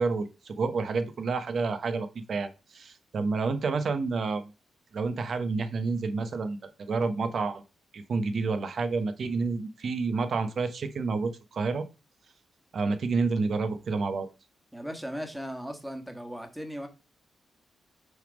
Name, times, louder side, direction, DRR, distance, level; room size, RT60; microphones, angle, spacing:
voice 1, 0.0-4.5 4.9-7.6 7.9-11.8 12.7-14.3, right 4 dB, 60° right, 0.8 m, -29 dB
voice 2, 14.7-16.9, equal, 5° right, 1.4 m, -37 dB
6.3 x 3.5 x 5.1 m
cardioid pair, 95°, 0 cm